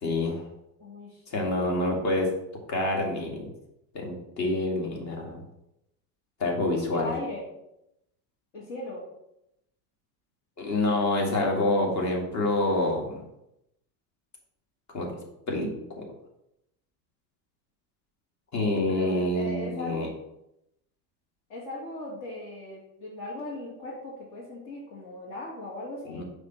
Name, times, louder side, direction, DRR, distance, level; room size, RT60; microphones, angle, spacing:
voice 1, 0.0-0.5 1.3-2.3 2.7-3.5 3.9-5.4 6.4-7.1 10.6-13.2 14.9-15.2 15.5-15.7 16.0-16.1 18.5-20.1 26.1-26.2, left 2 dB, 40° left, 0 dB, 1.9 m, -27 dB
voice 2, 0.8-1.8 6.9-7.4 8.5-9.1 18.9-20.1 21.5-26.2, left 1 dB, 65° left, -6 dB, 2.4 m, -38 dB
5.9 x 3.4 x 5.8 m, 0.83 s
supercardioid pair, 115°, 44 cm